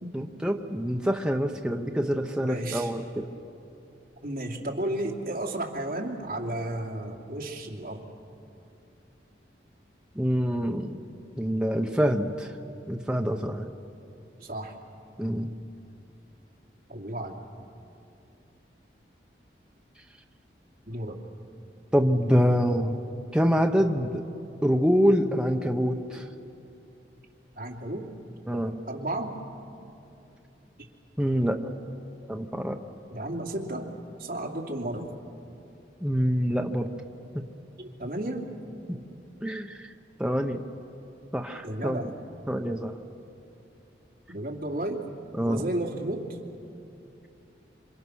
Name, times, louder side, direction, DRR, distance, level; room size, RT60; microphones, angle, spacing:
voice 1, 0.1-3.2 10.1-11.0 11.4-12.5 12.9-13.7 15.2-15.5 21.9-23.0 23.3-24.3 24.6-26.3 28.5-28.8 31.2-31.6 32.3-32.8 36.0-36.9 38.9-39.0 39.4-39.9 40.2-40.6 41.3-42.0 42.5-42.9 45.3-45.6, equal, 5° right, 3 dB, 0.8 m, -25 dB
voice 2, 2.4-2.9 4.2-8.0 14.4-14.7 16.9-17.4 20.9-21.2 27.6-28.1 28.9-29.3 33.1-33.9 34.2-35.1 37.8-38.5 41.6-42.1 44.3-45.1 45.4-46.4, right 1 dB, 55° right, -1 dB, 2.7 m, -33 dB
27.5 x 25.5 x 6.3 m, 2.8 s
head